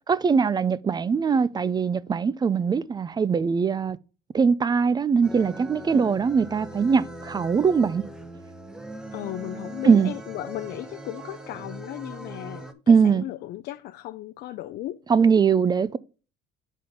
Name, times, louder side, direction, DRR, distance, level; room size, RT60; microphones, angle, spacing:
voice 1, 0.1-4.0 4.3-8.1 9.8-10.1 12.9-13.2 15.1-16.0, right 6 dB, 25° right, 0.4 m, -21 dB
sound 1, 5.2-12.7, right 1 dB, 5° right, 0.9 m, -40 dB
voice 2, 9.1-15.0, left 14 dB, 70° left, 0.5 m, -36 dB
6.9 x 4.3 x 5.0 m
cardioid pair, 110°, 17 cm